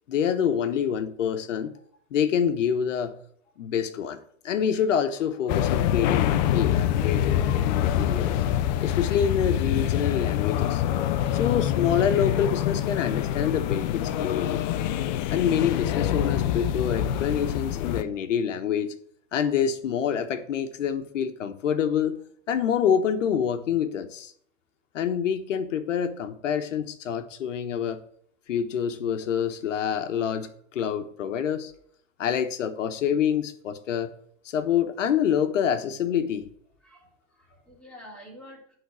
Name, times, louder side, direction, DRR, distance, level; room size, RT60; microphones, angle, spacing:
voice 1, 0.1-1.7 2.1-3.2 3.6-4.2 4.4-8.4 8.8-10.8 11.3-14.7 15.3-18.9 19.3-22.2 22.5-24.3 24.9-28.0 28.5-31.7 32.2-34.1 34.4-36.5, left 8 dB, 70° left, 9 dB, 1.2 m, -26 dB
sound 1, 5.5-18.0, left 11 dB, 35° left, 0.5 m, -25 dB
voice 2, 36.8-38.8, equal, 5° left, -6 dB, 4.0 m, -49 dB
10.5 x 3.9 x 6.9 m, 0.63 s
hypercardioid pair, 135°, 38 cm